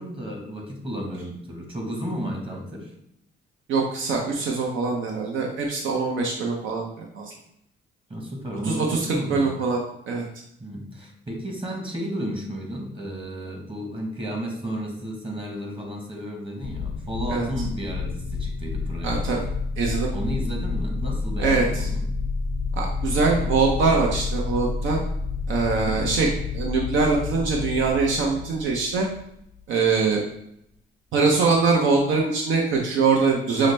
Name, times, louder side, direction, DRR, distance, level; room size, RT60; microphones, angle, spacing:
voice 1, 0.0-2.9 8.1-9.5 10.6-19.3 20.1-22.1 25.7-26.0, equal, 25° right, 1 dB, 1.1 m, -33 dB
voice 2, 3.7-7.3 8.7-9.8 10.1-10.2 17.3-17.5 19.0-19.4 19.8-20.1 21.4-21.9 22.8-25.0 25.5-26.3 26.5-29.1 29.7-30.2 31.1-33.7, right 4 dB, 75° right, 0 dB, 0.7 m, -23 dB
sound 1, 16.6-29.6, left 3 dB, 65° left, 0.4 m, -29 dB
5.6 x 2.1 x 3.2 m, 0.75 s
cardioid pair, 90°, 20 cm